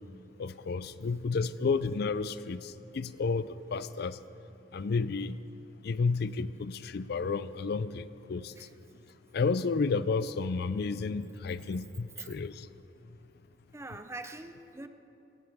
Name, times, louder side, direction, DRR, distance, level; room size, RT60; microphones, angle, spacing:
voice 1, 0.4-4.2 4.7-5.4 5.8-8.5 9.3-12.7, left 4 dB, 55° left, 14 dB, 0.4 m, -31 dB
voice 2, 13.7-14.9, right 2 dB, 15° right, 8 dB, 0.6 m, -43 dB
18.5 x 18.0 x 3.6 m, 2.9 s
head